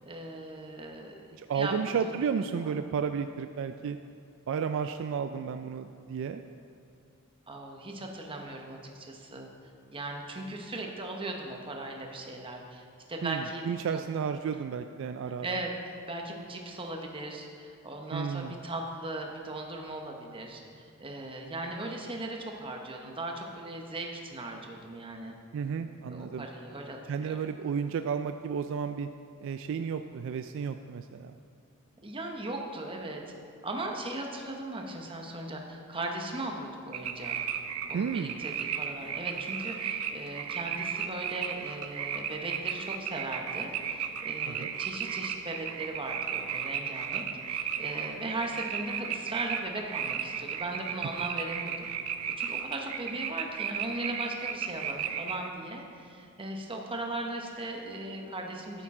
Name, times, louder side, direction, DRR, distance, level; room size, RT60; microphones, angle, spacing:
voice 1, 0.0-1.7 2.0-2.2 2.6-2.7 7.5-9.5 9.9-14.0 15.4-25.3 26.1-27.4 32.0-33.2 33.6-37.4 37.9-51.9 52.4-58.8, right 2 dB, 25° right, 2 dB, 1.0 m, -38 dB
voice 2, 1.4-4.0 4.5-6.4 13.2-15.6 18.1-18.6 25.5-26.5 27.1-29.1 29.4-31.4 37.9-38.4 44.5-44.7, right 6 dB, 60° right, 8 dB, 0.3 m, -32 dB
sound 1, 36.9-55.5, right 8 dB, 90° right, 0.6 m, -35 dB
11.5 x 9.0 x 3.7 m, 2.5 s
head